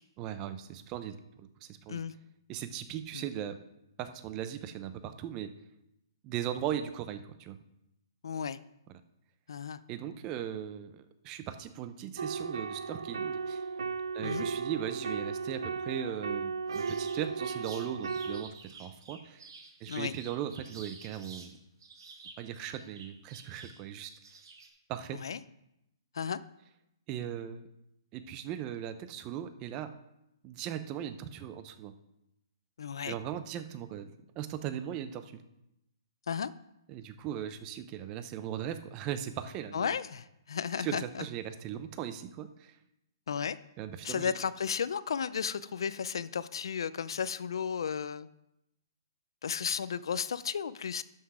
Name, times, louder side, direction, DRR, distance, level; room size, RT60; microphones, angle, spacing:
voice 1, 0.2-2.1 2.5-3.6 4.0-5.5 6.2-7.6 8.9-9.0 9.9-13.6 14.1-19.5 19.8-21.6 22.4-24.1 24.9-25.2 27.1-27.7 28.1-29.9 30.4-31.9 33.0-35.4 36.9-39.9 40.8-42.7 43.8-44.3, right 10 dB, 25° right, 11 dB, 0.6 m, -38 dB
voice 2, 8.2-8.6 9.5-9.8 14.2-14.5 19.9-20.1 25.2-25.4 26.1-26.4 32.8-33.2 36.3-36.5 39.7-41.2 43.3-43.6 44.0-48.3 49.4-51.0, left 7 dB, 75° left, 16 dB, 0.5 m, -34 dB
sound 1, 12.2-18.4, right 5 dB, 85° right, 0.6 m, -35 dB
sound 2, 16.7-21.5 21.8-24.7, right 4 dB, 65° right, 2.3 m, -50 dB
12.0 x 5.9 x 4.9 m, 0.85 s
hypercardioid pair, 160°, 2 cm